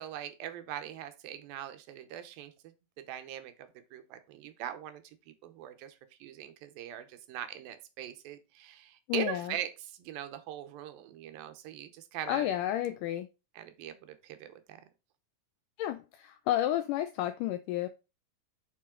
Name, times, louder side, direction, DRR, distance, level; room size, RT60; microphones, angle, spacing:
voice 1, 0.0-2.7 3.1-12.5 13.6-14.8, right 11 dB, 80° right, 2.6 m, -41 dB
voice 2, 9.1-9.5 12.3-13.3 15.8-17.9, left 13 dB, 85° left, 1.9 m, -31 dB
7.5 x 5.3 x 3.8 m
omnidirectional pair, 4.2 m